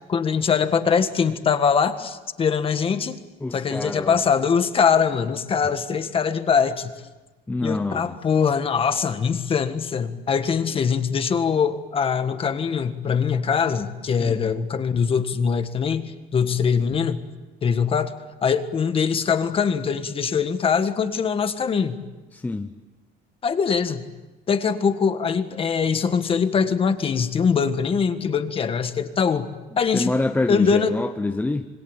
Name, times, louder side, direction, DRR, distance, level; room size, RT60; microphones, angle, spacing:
voice 1, 0.1-3.2 3.5-6.9 7.6-17.2 17.6-18.2 18.4-22.0 23.4-24.0 24.5-29.5 29.8-30.2 30.5-31.0, left 6 dB, 30° left, 9 dB, 1.6 m, -22 dB
voice 2, 3.4-4.2 7.5-8.0 14.2-14.5 16.4-16.5 22.3-22.7 29.9-31.7, left 2 dB, 10° left, 6 dB, 0.9 m, -26 dB
26.5 x 22.5 x 9.0 m, 1.2 s
cardioid pair, 150°, 19 cm